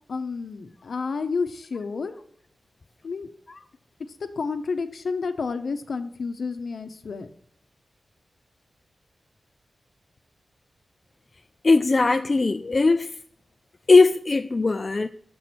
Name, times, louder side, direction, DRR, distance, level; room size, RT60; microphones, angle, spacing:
voice 1, 0.1-2.1 3.0-3.3 4.4-7.3, left 4 dB, 65° left, 0.8 m, -30 dB
voice 2, 11.6-13.2 13.9-15.1, left 3 dB, 35° left, 0.3 m, -19 dB
7.1 x 6.1 x 4.2 m
wide cardioid pair, 105°, 0 cm